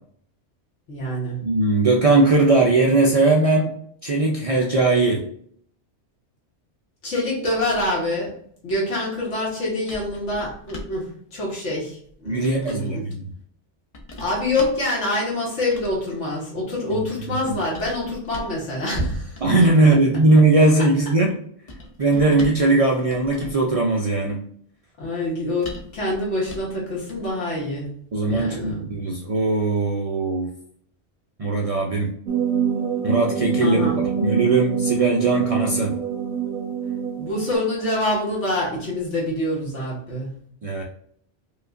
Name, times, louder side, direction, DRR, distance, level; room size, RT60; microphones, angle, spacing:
voice 1, 0.9-1.4 7.0-8.3 8.6-13.0 14.2-19.4 25.0-28.0 28.3-28.9 33.6-33.9 37.2-40.3, left 1 dB, 80° left, -4 dB, 1.6 m, -26 dB
voice 2, 1.4-3.7 4.0-5.2 12.3-13.3 16.9-17.0 17.4-17.5 19.4-21.3 22.0-24.4 28.1-30.5 31.4-32.1 33.0-33.9 34.2-36.0 40.6-40.8, right 2 dB, 65° right, -1 dB, 0.3 m, -19 dB
sound 1, 7.5-8.1 9.9-11.1 12.1-12.9 13.9-14.9 15.6-16.1 17.5-18.6 19.3-19.8 21.7-22.7 23.1-23.7 25.6-26.8 27.1-27.3, left 1 dB, 40° left, 0.6 m, -40 dB
sound 2, 32.3-37.5, right 7 dB, 90° right, 0.9 m, -25 dB
4.8 x 2.3 x 2.5 m, 0.63 s
omnidirectional pair, 1.2 m